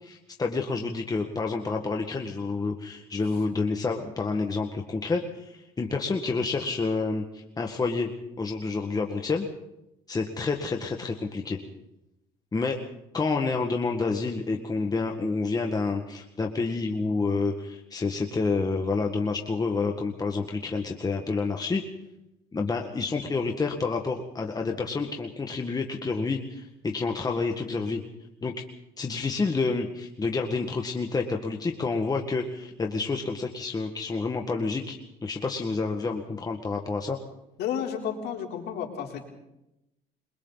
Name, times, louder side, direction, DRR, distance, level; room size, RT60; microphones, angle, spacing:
voice 1, 0.0-8.1 8.4-9.5 10.1-11.6 12.5-12.8 13.1-21.8 22.5-28.0 28.4-28.5 29.0-37.2, left 4 dB, 20° left, 3 dB, 1.8 m, -29 dB
voice 2, 37.6-39.2, left 8 dB, 80° left, 1 dB, 3.9 m, -31 dB
28.5 x 23.0 x 4.1 m, 0.89 s
cardioid pair, 110°, 17 cm